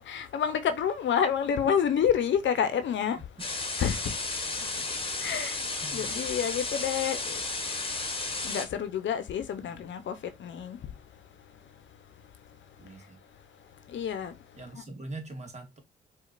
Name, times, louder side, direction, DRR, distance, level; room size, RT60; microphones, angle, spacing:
voice 1, 0.1-3.2 3.8-4.0 5.2-5.6 5.9-7.4 8.4-10.1 10.4-10.8 13.9-14.3, left 8 dB, 70° left, 0.7 m, -28 dB
sound 1, 3.4-8.7, left 3 dB, 25° left, 1.0 m, -33 dB
voice 2, 5.8-6.2 9.5-9.9 12.8-13.2 14.5-15.8, right 2 dB, 35° right, 1.3 m, -43 dB
4.4 x 2.3 x 2.4 m
supercardioid pair, 55°, 20 cm